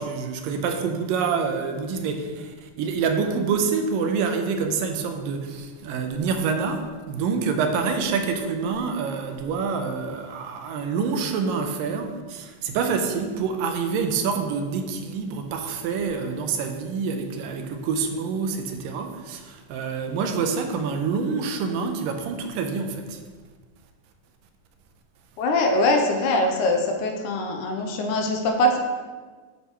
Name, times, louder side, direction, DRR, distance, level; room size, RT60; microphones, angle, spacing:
voice 1, 0.0-23.2, right 5 dB, 85° right, 5 dB, 2.4 m, -27 dB
voice 2, 25.4-28.8, left 1 dB, 75° left, 3 dB, 2.1 m, -22 dB
8.4 x 8.0 x 3.1 m, 1.4 s
omnidirectional pair, 3.8 m